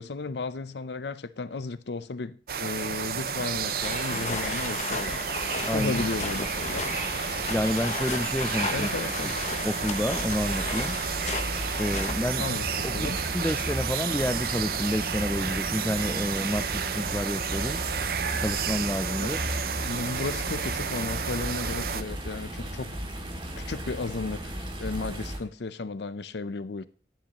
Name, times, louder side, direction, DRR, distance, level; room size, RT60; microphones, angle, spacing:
voice 1, 0.0-5.3 5.7-7.1 8.7-9.4 12.4-12.7 12.9-13.2 19.2-19.4 19.8-23.0 23.6-26.9, left 3 dB, 75° left, 0.6 m, -34 dB
sound 1, 2.5-22.0, right 7 dB, 55° right, 0.6 m, -32 dB
sound 2, 3.8-12.1, left 4 dB, 40° left, 0.9 m, -34 dB
sound 3, 5.7-25.4, equal, 25° right, 2.2 m, -36 dB
voice 2, 7.5-8.9 9.2-9.3 9.6-11.0 11.8-12.5 12.8-17.8 18.4-19.4, left 1 dB, 10° left, 0.3 m, -29 dB
11.5 x 10.5 x 2.9 m
head